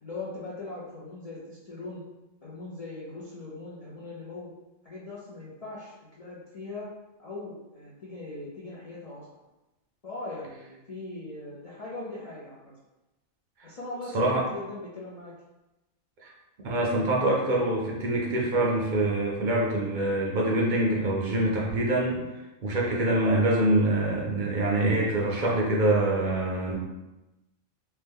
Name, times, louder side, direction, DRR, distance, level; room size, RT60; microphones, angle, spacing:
voice 1, 0.0-2.0 2.4-4.5 4.8-6.9 7.2-9.3 10.0-12.7 13.6-15.3, left 2 dB, 65° left, -7 dB, 0.3 m, -40 dB
voice 2, 16.6-22.2 22.6-26.7, right 1 dB, 55° right, -3 dB, 0.5 m, -25 dB
2.7 x 2.1 x 3.4 m, 1.0 s
omnidirectional pair, 1.4 m